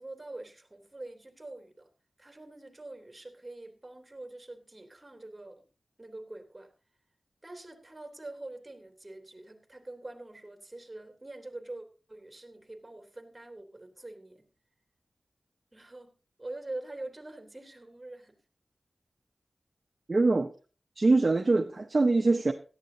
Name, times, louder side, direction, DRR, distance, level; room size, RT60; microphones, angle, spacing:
voice 1, 0.0-1.9 2.2-5.7 6.0-6.7 7.4-14.5 15.7-16.1 16.4-18.4, right 2 dB, 25° right, 3.1 m, -44 dB
voice 2, 20.1-20.5 21.0-22.5, right 3 dB, 50° right, 0.8 m, -23 dB
17.0 x 12.5 x 2.8 m
cardioid pair, 50°, 0 cm